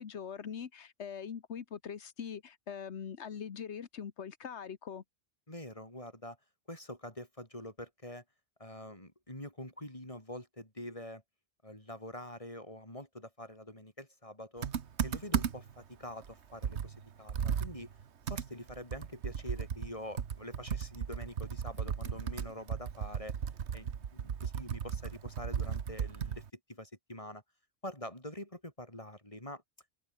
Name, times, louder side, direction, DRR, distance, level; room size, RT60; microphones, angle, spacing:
voice 1, 0.0-5.0, left 7 dB, 90° left, 1.5 m, -42 dB
voice 2, 5.5-6.4 6.7-8.2 8.6-11.2 11.6-14.7 15.0-17.9 18.3-23.4 23.7-27.4 27.8-29.6, left 1 dB, 30° left, 6.4 m, -45 dB
Computer keyboard, 14.6-15.8 16.2-16.3 16.6-26.5, right 7 dB, 90° right, 1.4 m, -36 dB
omnidirectional pair, 1.1 m